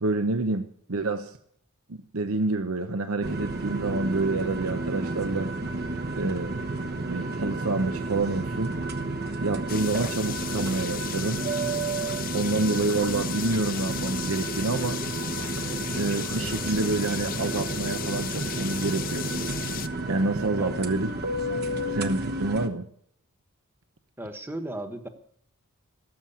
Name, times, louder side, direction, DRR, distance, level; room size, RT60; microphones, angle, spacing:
voice 1, 0.0-1.4 1.9-5.5 6.1-6.6 7.0-8.8 9.4-11.4 12.3-15.0 16.0-19.3 20.1-21.1 21.9-22.9, right 3 dB, 75° right, 8 dB, 0.9 m, -28 dB
sound 1, 3.2-22.7, right 2 dB, 45° right, 1.1 m, -31 dB
sound 2, 9.7-19.9, left 11 dB, 40° left, 0.6 m, -36 dB
voice 2, 24.2-25.1, right 1 dB, 10° right, 7 dB, 1.3 m, -35 dB
18.5 x 7.8 x 8.7 m, 0.67 s
head